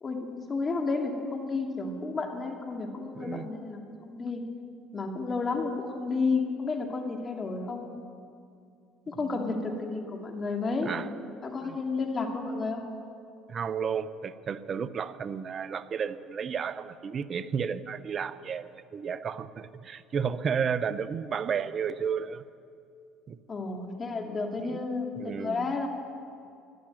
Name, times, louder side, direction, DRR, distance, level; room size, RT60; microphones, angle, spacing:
voice 1, 0.0-4.4 4.9-7.9 9.1-10.9 11.4-12.8 23.5-25.9, left 3 dB, 35° left, 2 dB, 2.6 m, -31 dB
voice 2, 3.2-3.5 9.2-9.6 10.9-11.1 11.6-11.8 13.5-22.4 23.3-23.4 24.7-24.8 25.2-25.7, right 7 dB, 45° right, 15 dB, 0.7 m, -32 dB
13.5 x 12.0 x 9.0 m, 2.4 s
hypercardioid pair, 75°, 0 cm